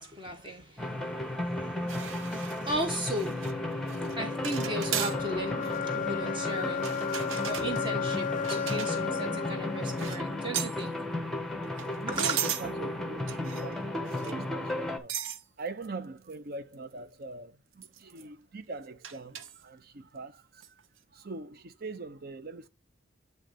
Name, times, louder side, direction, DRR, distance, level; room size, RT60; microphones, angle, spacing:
voice 1, 0.0-7.0 7.4-11.0 12.1-12.2, right 1 dB, 25° right, 1.1 m, -37 dB
sound 1, 0.8-15.0, left 1 dB, ahead, 0.9 m, -34 dB
sound 2, 1.9-3.5 3.9-4.2 4.4-5.2 5.6-5.8 6.7-9.2 9.8-10.2 10.5-10.8 11.6-12.7 13.3-13.7 14.1-14.4 15.1-15.4 15.8-15.9 16.3-16.4 16.7-16.8 17.8-18.2 19.0-19.6 20.6-20.8, right 9 dB, 85° right, 0.7 m, -37 dB
sound 3, 3.1-11.1, left 6 dB, 40° left, 0.4 m, -35 dB
voice 2, 8.4-9.1 10.3-10.6 12.0-15.2 15.6-20.8 21.1-22.7, right 3 dB, 50° right, 0.7 m, -43 dB
8.9 x 3.1 x 5.1 m
head